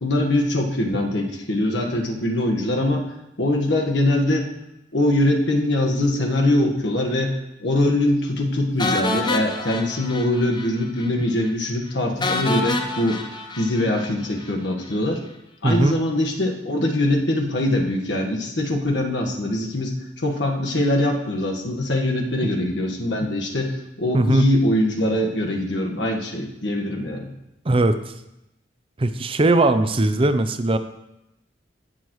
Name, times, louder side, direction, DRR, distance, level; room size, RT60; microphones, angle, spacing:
voice 1, 0.0-3.1 3.4-4.5 4.9-13.2 13.6-15.2 15.6-27.3, left 1 dB, 70° left, 1 dB, 1.5 m, -22 dB
sound 1, 8.8-10.7 11.0-11.1 11.4-11.5 12.2-14.5, left 2 dB, 25° left, 0.7 m, -27 dB
voice 2, 15.6-16.0 24.1-24.4 27.7-28.0 29.0-30.8, right 2 dB, 30° right, 10 dB, 0.5 m, -19 dB
17.5 x 6.7 x 3.1 m, 0.88 s
head